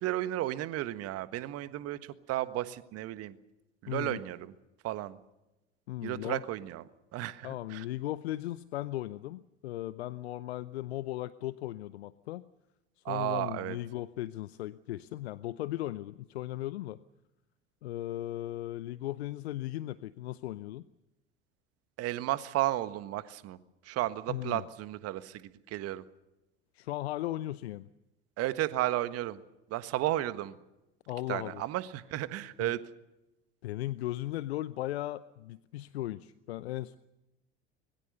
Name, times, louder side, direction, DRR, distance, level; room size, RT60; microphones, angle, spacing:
voice 1, 0.0-2.0 2.3-3.3 3.8-4.5 4.8-5.2 6.0-6.8 7.1-7.8 13.0-13.8 22.0-23.6 23.9-26.0 28.4-29.4 29.7-30.5 31.3-32.8, right 15 dB, 45° right, 13 dB, 1.5 m, -33 dB
voice 2, 3.9-4.2 5.9-6.4 7.4-12.5 13.1-17.0 17.8-20.8 24.3-24.7 26.7-27.9 31.1-31.6 32.6-32.7 33.6-37.0, left 15 dB, 70° left, 17 dB, 0.8 m, -37 dB
25.0 x 21.5 x 6.7 m, 0.96 s
figure-of-eight pair, 70°, 34 cm